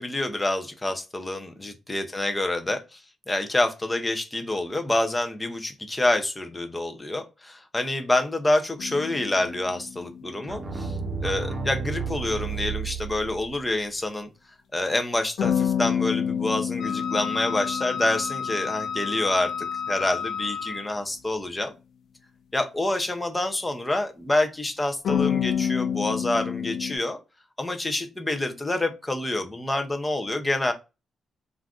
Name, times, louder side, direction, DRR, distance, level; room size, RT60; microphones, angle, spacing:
voice 1, 0.0-3.0 3.3-10.9 11.2-14.3 14.7-19.5 19.9-21.7 22.5-27.2 27.6-30.7, left 2 dB, 15° left, 6 dB, 0.5 m, -27 dB
sound 1, 8.8-11.1 15.4-20.2 25.0-27.0, left 8 dB, 70° left, 0.4 m, -29 dB
sound 2, 10.5-13.6, right 5 dB, 30° right, 0.7 m, -32 dB
Wind instrument woodwind instrument, 16.8-21.0, left 7 dB, 40° left, 1.1 m, -32 dB
2.5 x 2.3 x 3.5 m, 0.27 s
cardioid pair, 140°, 0 cm